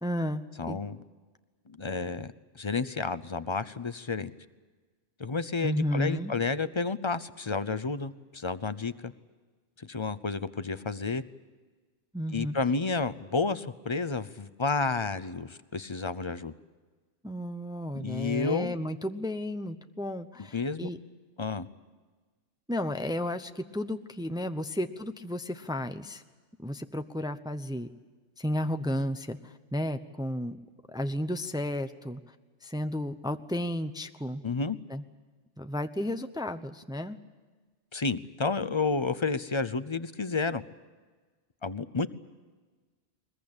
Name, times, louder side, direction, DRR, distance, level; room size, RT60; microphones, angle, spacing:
voice 1, 0.0-0.8 5.6-6.3 12.1-12.5 17.2-21.0 22.7-26.2 26.6-27.9 28.4-30.6 30.9-32.2 32.6-34.4 34.9-35.0 35.6-37.2, left 1 dB, 5° right, 8 dB, 0.8 m, -33 dB
voice 2, 0.6-1.0 1.8-4.3 5.2-9.1 9.8-11.2 12.3-16.5 17.9-18.8 20.5-20.9 21.4-21.7 34.4-34.8 37.9-40.6 41.6-42.1, left 4 dB, 30° left, 13 dB, 0.7 m, -31 dB
22.0 x 21.5 x 8.8 m, 1.3 s
omnidirectional pair, 1.2 m